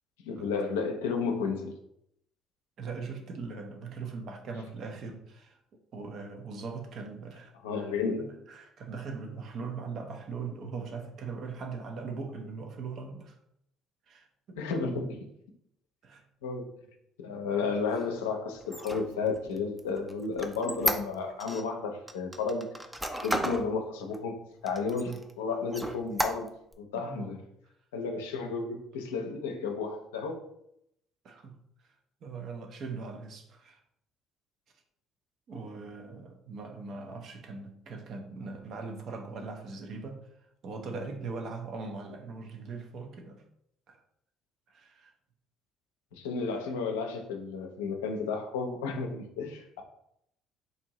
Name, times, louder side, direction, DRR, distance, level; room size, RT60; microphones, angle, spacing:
voice 1, 0.2-1.8 7.6-8.4 14.6-15.3 16.4-16.7 17.2-22.7 23.2-24.4 24.6-26.5 26.8-27.4 27.9-30.4 46.1-49.8, left 4 dB, 80° left, 4 dB, 0.5 m, -32 dB
voice 2, 2.8-5.6 5.9-7.9 8.2-13.4 14.1-14.6 16.0-16.2 17.6-17.8 25.0-25.2 26.9-27.4 31.2-31.9 32.2-33.8 35.5-40.3 40.6-43.4 43.9-44.0 44.7-45.1, right 4 dB, 55° right, 4 dB, 0.7 m, -40 dB
Squeak, 18.6-21.6 22.1-23.7 24.1-24.2 24.6-25.3 25.7-26.7, equal, 5° right, 0.5 m, -33 dB
4.0 x 2.6 x 2.9 m, 0.75 s
hypercardioid pair, 55°, 0 cm